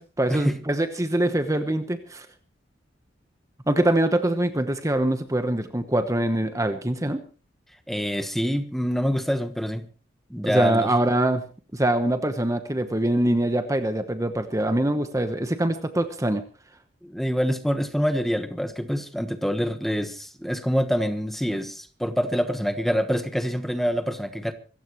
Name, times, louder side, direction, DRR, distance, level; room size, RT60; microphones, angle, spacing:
voice 1, 0.0-2.3 3.7-7.2 10.4-11.4 11.7-16.4, right 1 dB, 15° right, 1.0 m, -24 dB
voice 2, 7.9-9.9 10.3-10.9 17.0-24.5, equal, ahead, 1.2 m, -26 dB
25.0 x 14.5 x 3.1 m
head